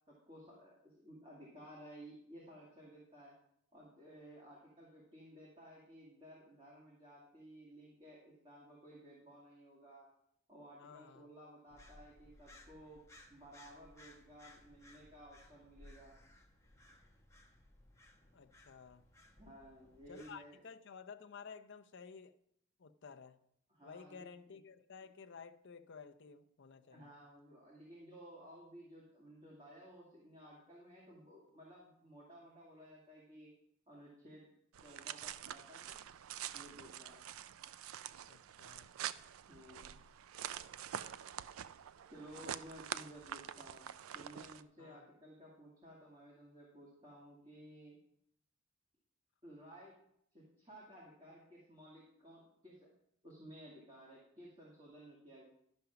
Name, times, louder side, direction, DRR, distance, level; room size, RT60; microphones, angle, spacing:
voice 1, 0.1-3.3 3.7-10.1 10.5-13.0 13.3-16.1 19.4-20.6 23.7-24.3 26.9-33.5 33.9-34.5 34.8-36.0 36.5-37.3 39.5-40.0 42.1-43.9 44.1-48.0 49.4-49.9 50.3-52.9 53.2-55.4, equal, 25° right, -5 dB, 2.3 m, -56 dB
voice 2, 10.8-11.3 18.3-19.0 20.1-22.3 22.8-23.4 23.8-27.1 38.3-38.9 44.8-45.0, left 5 dB, 60° left, 7 dB, 0.6 m, -53 dB
sound 1, 11.7-20.3, left 1 dB, 15° left, 1.1 m, -61 dB
sound 2, 34.7-44.6, right 10 dB, 85° right, 0.4 m, -46 dB
11.5 x 5.3 x 5.8 m, 0.72 s
head